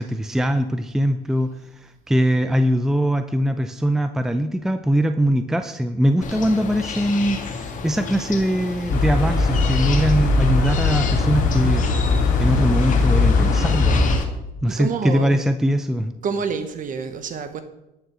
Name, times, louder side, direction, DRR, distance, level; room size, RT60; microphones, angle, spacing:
voice 1, 0.0-1.5 1.8-11.9 12.4-14.0 14.6-16.1, equal, 5° right, 9 dB, 0.6 m, -21 dB
sound 1, 6.2-14.2, left 5 dB, 50° left, 1.8 m, -31 dB
sound 2, 8.9-14.2, left 3 dB, 90° left, 3.2 m, -19 dB
voice 2, 14.7-15.4 16.2-17.6, right 6 dB, 50° right, 9 dB, 1.0 m, -27 dB
11.5 x 6.7 x 6.3 m, 0.93 s
cardioid pair, 110°, 17 cm